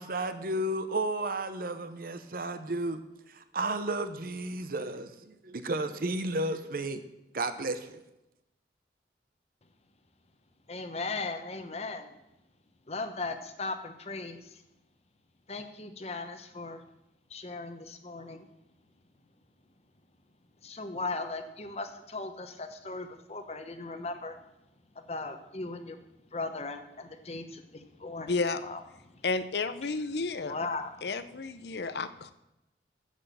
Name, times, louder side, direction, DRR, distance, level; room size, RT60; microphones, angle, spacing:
voice 1, 0.0-3.0 3.3-7.0 7.3-8.0, right 2 dB, 55° right, 10 dB, 0.8 m, -33 dB
voice 2, 10.7-12.1 12.9-14.6 15.5-16.8 17.3-18.4 20.6-24.4 24.9-26.0 26.3-28.3 28.6-28.8 29.1-29.2 30.4-30.9, left 3 dB, 35° left, 8 dB, 1.1 m, -37 dB
voice 3, 28.3-28.6 29.2-30.6 31.0-32.3, left 3 dB, 70° left, 13 dB, 0.7 m, -31 dB
10.5 x 8.1 x 6.9 m, 0.90 s
head